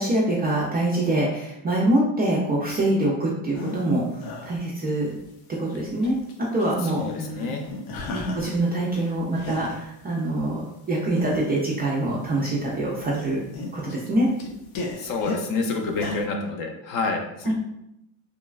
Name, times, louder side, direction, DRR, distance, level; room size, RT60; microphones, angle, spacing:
voice 1, 0.0-5.1 5.6-6.2 6.5-7.0 7.4-7.5 8.1-13.4 13.7-14.3 17.4-17.5, right 1 dB, 25° right, -4 dB, 0.3 m, -24 dB
sound 1, 3.5-3.9 4.2-5.2 5.6-6.3 6.6-8.6 8.9-9.9 10.4-10.5 11.1-11.7 12.3-12.7 13.0-15.4 15.9-16.3, left 3 dB, 85° left, 0.7 m, -35 dB
voice 2, 6.8-7.6 15.0-17.5, left 3 dB, 45° left, 3 dB, 0.5 m, -28 dB
3.0 x 2.2 x 2.3 m, 0.83 s
supercardioid pair, 105°, 48 cm